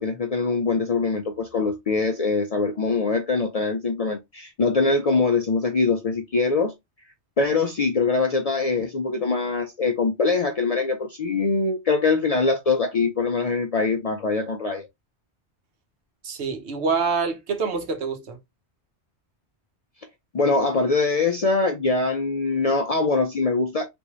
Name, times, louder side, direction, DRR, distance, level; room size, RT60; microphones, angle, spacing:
voice 1, 0.0-6.7 7.4-14.9 20.3-23.8, left 4 dB, 55° left, 0.4 m, -23 dB
voice 2, 16.2-18.4, right 5 dB, 80° right, 1.1 m, -26 dB
3.5 x 2.6 x 2.9 m
omnidirectional pair, 1.1 m